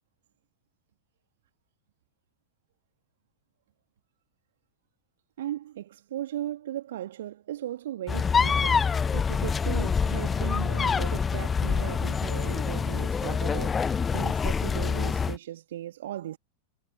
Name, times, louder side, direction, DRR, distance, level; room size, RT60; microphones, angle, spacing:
voice 1, 5.4-13.8 14.1-16.4, right 12 dB, 60° right, 1.5 m, -37 dB
sound 1, 8.1-15.4, left 6 dB, 15° left, 0.4 m, -26 dB
figure-of-eight pair, 90°, 0 cm